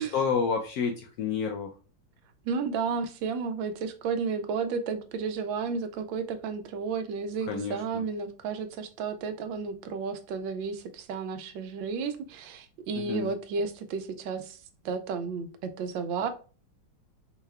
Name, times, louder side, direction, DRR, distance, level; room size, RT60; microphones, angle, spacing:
voice 1, 0.0-1.7 7.5-8.0 13.0-13.3, left 6 dB, 75° left, 2 dB, 0.8 m, -30 dB
voice 2, 2.4-14.6 14.8-16.3, right 5 dB, 85° right, 9 dB, 1.3 m, -32 dB
4.6 x 2.3 x 3.2 m, 0.36 s
omnidirectional pair, 2.0 m